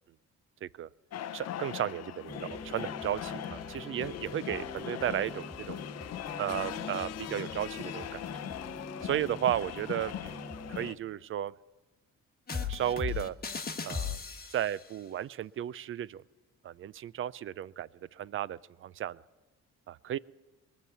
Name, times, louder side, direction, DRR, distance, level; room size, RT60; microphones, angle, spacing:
sound 1, 1.1-11.0, left 11 dB, 60° left, 0.6 m, -40 dB
voice 1, 1.3-5.8 6.4-8.2 9.0-11.5 12.5-13.4 13.8-14.2 14.5-16.2 16.6-19.2 19.9-20.2, right 11 dB, 45° right, 20 dB, 0.4 m, -34 dB
sound 2, 2.3-10.9, left 2 dB, 15° left, 1.1 m, -45 dB
sound 3, 12.5-14.8, left 6 dB, 30° left, 1.1 m, -36 dB
20.5 x 7.3 x 8.2 m, 1.2 s
cardioid pair, 90°, 30 cm